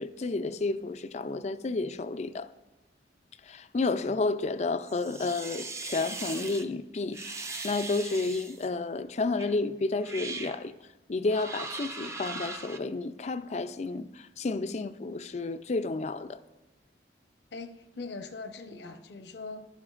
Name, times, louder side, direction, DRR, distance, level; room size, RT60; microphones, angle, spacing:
voice 1, 0.0-2.5 3.5-10.7 11.1-16.4, left 3 dB, 40° left, 0.4 m, -31 dB
sound 1, 4.9-6.6 7.1-8.7 9.4-9.5 10.0-10.6 11.3-12.8, right 3 dB, 15° right, 0.6 m, -39 dB
voice 2, 17.5-19.7, left 3 dB, 70° left, 0.9 m, -41 dB
14.5 x 11.5 x 2.5 m
head